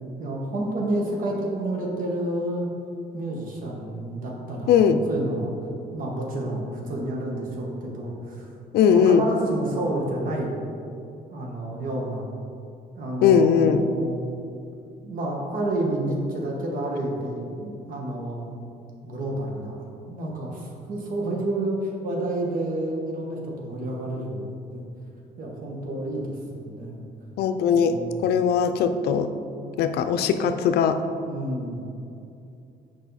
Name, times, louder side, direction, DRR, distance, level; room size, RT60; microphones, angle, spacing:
voice 1, 0.2-2.7 3.1-4.8 5.1-5.5 5.9-8.5 8.8-10.6 11.3-12.3 12.9-14.1 15.0-18.5 19.0-24.8 25.4-27.0 27.6-28.2 31.2-31.8, right 1 dB, 55° right, -1 dB, 1.5 m, -30 dB
voice 2, 4.7-5.0 8.7-9.2 13.2-13.8 27.4-28.0 28.2-29.3 29.8-31.0, left 7 dB, 70° left, 8 dB, 0.5 m, -19 dB
6.9 x 4.9 x 4.1 m, 2.6 s
cardioid pair, 110°, 17 cm